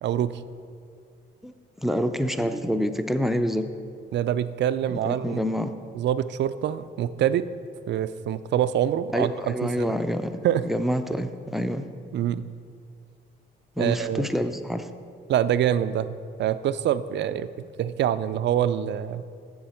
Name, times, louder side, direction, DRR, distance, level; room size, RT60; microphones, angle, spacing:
voice 1, 0.0-0.3 4.1-5.4 5.9-7.5 7.9-10.0 10.4-10.6 12.1-12.5 13.8-14.3 15.3-17.5 17.8-19.2, right 10 dB, 60° right, 13 dB, 0.4 m, -25 dB
voice 2, 1.8-3.7 5.0-5.7 9.1-10.3 10.6-11.8 13.8-14.9, equal, ahead, 8 dB, 0.5 m, -27 dB
7.5 x 7.1 x 6.4 m, 2.4 s
cardioid pair, 90°, 20 cm